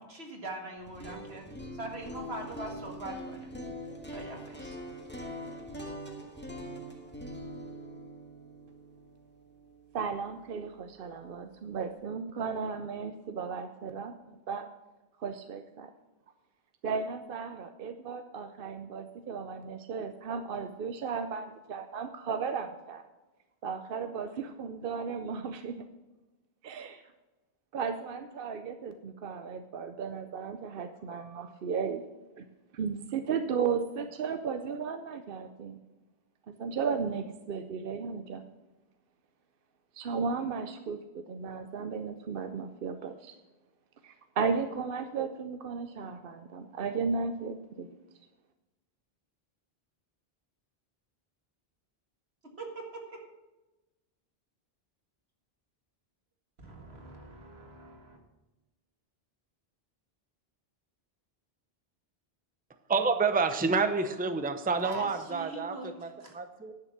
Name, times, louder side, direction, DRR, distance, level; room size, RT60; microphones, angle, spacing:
voice 1, 0.0-1.5 1.7-3.5 4.1-4.8 52.4-53.2 56.6-58.2 64.8-66.3, right 2 dB, 85° right, 1 dB, 2.2 m, -42 dB
sound 1, 0.8-10.8, equal, 10° left, 1.6 m, -43 dB
voice 2, 9.9-14.7 15.2-15.9 16.8-23.0 23.6-25.9 26.6-27.0 27.7-32.1 32.4-32.5 32.7-35.8 36.5-38.4 39.9-43.3 44.0-47.9, right 5 dB, 65° right, 8 dB, 0.8 m, -35 dB
voice 3, 62.9-66.7, right 4 dB, 10° right, 8 dB, 0.6 m, -29 dB
10.5 x 6.7 x 7.1 m, 1.1 s
omnidirectional pair, 1.0 m